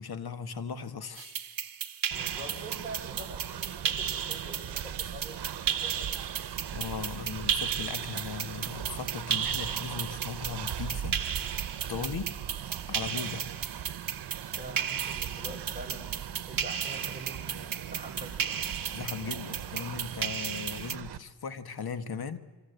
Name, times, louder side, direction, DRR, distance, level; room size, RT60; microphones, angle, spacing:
voice 1, 0.0-1.5 6.7-11.2 11.9-12.3 12.9-13.5 18.9-22.4, left 6 dB, 65° left, 11 dB, 1.7 m, -38 dB
sound 1, 1.2-21.0, right 8 dB, 60° right, 1.3 m, -35 dB
voice 2, 2.1-6.2 14.6-16.2 16.5-18.6, right 1 dB, 20° right, -1 dB, 7.5 m, -45 dB
Train, 2.1-21.2, right 9 dB, 85° right, 1.0 m, -40 dB
27.0 x 25.0 x 8.3 m, 1.3 s
wide cardioid pair, 120°, 39 cm